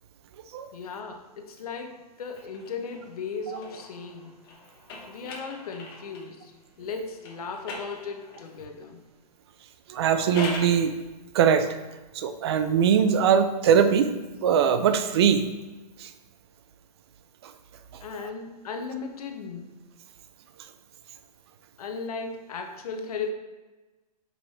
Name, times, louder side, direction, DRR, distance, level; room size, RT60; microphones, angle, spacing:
voice 1, 0.7-4.3 5.1-6.5 6.8-9.0 18.0-19.7 21.8-23.3, left 4 dB, 65° left, 4 dB, 1.1 m, -36 dB
sound 1, 2.3-6.4 7.2-8.6 10.0-10.8, left 3 dB, 35° left, 1.2 m, -41 dB
voice 2, 9.9-10.9 11.3-11.8 12.1-14.1 14.4-15.4 16.0-16.1, right 7 dB, 40° right, 9 dB, 0.5 m, -21 dB
5.5 x 4.7 x 4.2 m, 1.2 s
hypercardioid pair, 165°, 21 cm